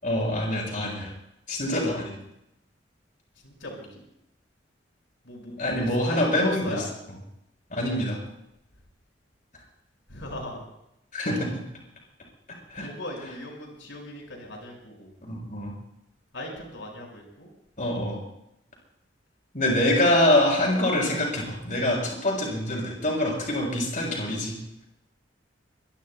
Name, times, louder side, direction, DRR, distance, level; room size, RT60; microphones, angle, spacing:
voice 1, 0.0-1.1 1.5-2.1 5.6-6.8 7.7-8.2 11.1-11.6 12.7-12.9 15.2-15.7 17.8-18.2 19.5-24.5, left 1 dB, 45° left, -1 dB, 6.2 m, -25 dB
voice 2, 3.4-4.0 5.2-6.8 10.1-10.6 12.7-15.1 16.3-17.5, left 1 dB, 90° left, 0 dB, 5.6 m, -38 dB
23.5 x 23.0 x 2.2 m, 0.82 s
head